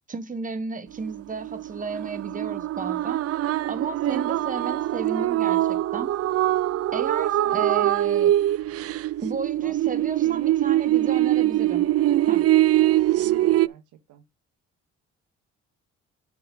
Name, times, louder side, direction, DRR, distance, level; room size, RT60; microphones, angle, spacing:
voice 1, 0.1-3.2 3.7-6.1 6.9-8.3 9.2-11.9 12.3-12.5, right 4 dB, 25° right, 1.3 m, -33 dB
sound 1, 0.9-13.7, right 14 dB, 55° right, 0.4 m, -23 dB
voice 2, 7.4-8.0 9.6-10.6 12.8-14.3, right 11 dB, 90° right, 1.6 m, -45 dB
6.3 x 6.1 x 5.2 m
cardioid pair, 90°, 30 cm